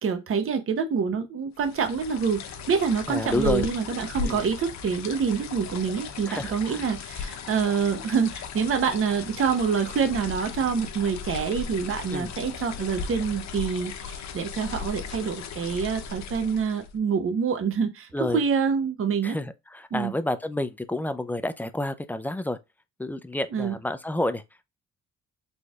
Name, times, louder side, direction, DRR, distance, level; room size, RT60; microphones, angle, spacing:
voice 1, 0.0-19.4 19.9-20.1 23.5-23.7, right 6 dB, 45° right, 0.8 m, -26 dB
sound 1, 1.6-17.0, left 6 dB, 65° left, 0.8 m, -37 dB
voice 2, 3.1-3.7 4.2-4.4 6.3-6.9 12.1-12.3 18.1-18.4 19.2-22.6 23.0-24.4, left 1 dB, 5° left, 0.4 m, -29 dB
4.2 x 3.2 x 2.4 m
cardioid pair, 90°, 30 cm